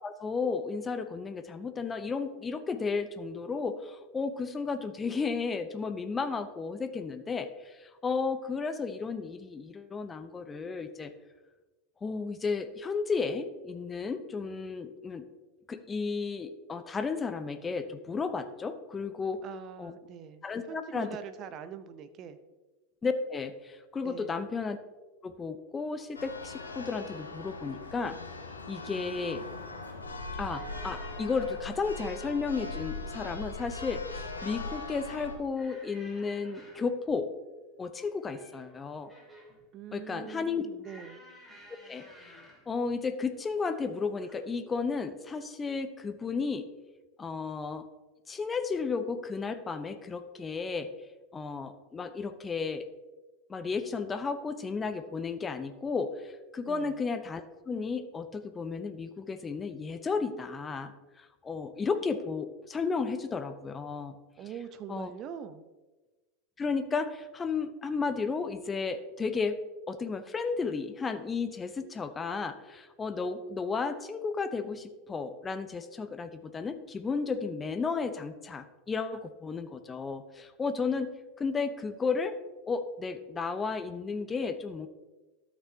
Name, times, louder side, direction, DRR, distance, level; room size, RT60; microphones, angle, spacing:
voice 1, 0.0-11.1 12.0-15.2 15.7-19.4 19.8-19.9 20.4-21.2 23.0-24.8 25.2-28.2 28.7-29.4 30.4-37.3 37.8-39.1 39.9-40.7 41.9-42.4 42.7-46.7 47.2-47.9 48.3-50.9 51.3-52.9 53.5-60.9 61.2-64.1 64.9-65.1 66.6-82.4 82.7-84.9, left 4 dB, 20° left, 9 dB, 0.7 m, -33 dB
voice 2, 19.4-22.4 24.0-24.4 39.7-41.2 56.7-57.0 64.4-65.6, right 7 dB, 40° right, 12 dB, 0.7 m, -43 dB
Church bell, 26.2-35.4, left 3 dB, 90° left, 1.0 m, -40 dB
sound 1, 30.5-31.7 33.1-33.7 34.1-34.6 35.5-37.0 37.9-39.6 40.8-42.7 43.6-43.9 44.2-44.4, equal, 5° right, 2.9 m, -54 dB
13.0 x 6.2 x 2.8 m, 1.2 s
figure-of-eight pair, 85°, 0 cm